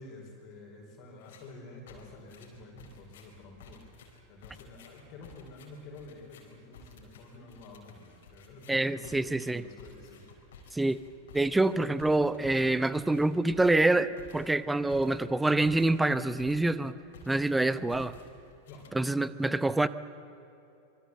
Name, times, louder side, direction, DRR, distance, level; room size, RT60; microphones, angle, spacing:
voice 1, 0.0-10.3 17.6-17.9 18.7-18.9, left 2 dB, 40° left, 1 dB, 5.1 m, -49 dB
sound 1, 1.2-1.5 1.9-16.8 17.1-17.6 17.9-19.3, left 4 dB, 60° left, 4.3 m, -54 dB
voice 2, 8.7-9.6 10.7-11.0 11.3-16.9 17.3-18.1 18.9-19.9, right 2 dB, 5° right, 15 dB, 0.8 m, -26 dB
25.5 x 24.5 x 7.8 m, 2.9 s
figure-of-eight pair, 90°, 0 cm